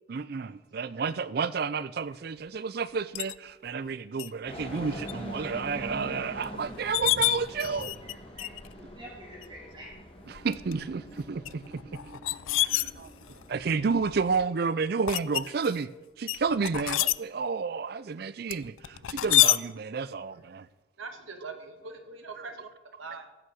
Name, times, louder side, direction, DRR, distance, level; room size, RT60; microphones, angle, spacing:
voice 1, 0.1-7.9 10.3-11.0 11.3-11.6 12.6-13.1 13.5-15.9 16.2-20.7, right 5 dB, 50° right, 0.4 m, -31 dB
sound 1, 3.2-3.4 4.2-4.3 4.7-5.1 5.6-5.7 6.4-6.5 6.8-8.1 8.4-8.7 9.4-9.5 10.4-10.7 11.5-13.4 14.0-14.4 15.1-15.8 16.3-17.2 18.5-19.6, left 17 dB, 85° left, 0.4 m, -27 dB
sound 2, 4.5-14.5, equal, 30° left, 1.9 m, -44 dB
voice 2, 8.0-9.9 13.1-13.2, equal, 25° right, 2.9 m, -48 dB
voice 3, 12.4-12.8 18.9-19.2 21.0-22.7 23.0-23.3, right 4 dB, 90° right, 1.6 m, -43 dB
15.0 x 6.3 x 6.2 m
head